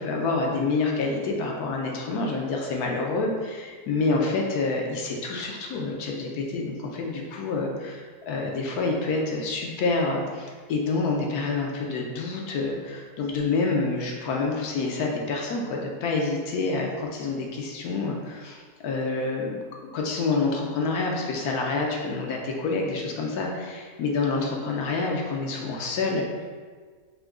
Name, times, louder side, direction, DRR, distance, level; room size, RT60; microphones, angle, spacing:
voice 1, 0.0-19.6 19.9-26.4, left 3 dB, 75° left, 0 dB, 1.1 m, -27 dB
3.7 x 2.8 x 3.5 m, 1.6 s
omnidirectional pair, 1.7 m